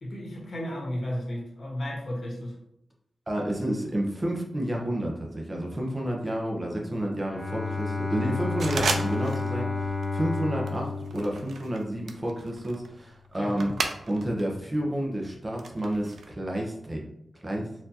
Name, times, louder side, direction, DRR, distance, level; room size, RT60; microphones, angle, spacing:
voice 1, 0.0-2.5 13.4-13.7, equal, 55° left, -2 dB, 1.3 m, -34 dB
voice 2, 3.3-13.7 14.1-17.0 17.4-17.7, right 1 dB, 25° right, -1 dB, 0.7 m, -30 dB
Bowed string instrument, 7.2-12.1, left 4 dB, 25° left, 0.7 m, -31 dB
sound 1, 8.6-9.5 9.8-10.2 10.7-14.4 14.7-16.3, right 4 dB, 80° right, 0.4 m, -34 dB
4.2 x 2.6 x 2.8 m, 0.77 s
wide cardioid pair, 100°, 0 cm